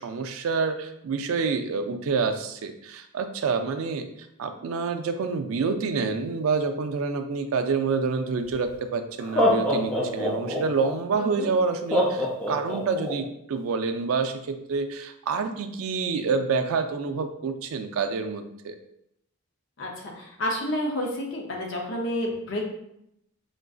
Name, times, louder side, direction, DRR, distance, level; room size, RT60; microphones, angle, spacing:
voice 1, 0.0-4.1 4.4-18.8, right 4 dB, 70° right, 8 dB, 0.3 m, -27 dB
Laughter, 8.5-8.6 9.2-10.9 11.9-13.1, equal, 5° left, 0.5 m, -24 dB
voice 2, 11.1-11.5 19.8-22.8, left 1 dB, 60° left, 0 dB, 0.6 m, -30 dB
3.8 x 2.5 x 2.3 m, 0.76 s
head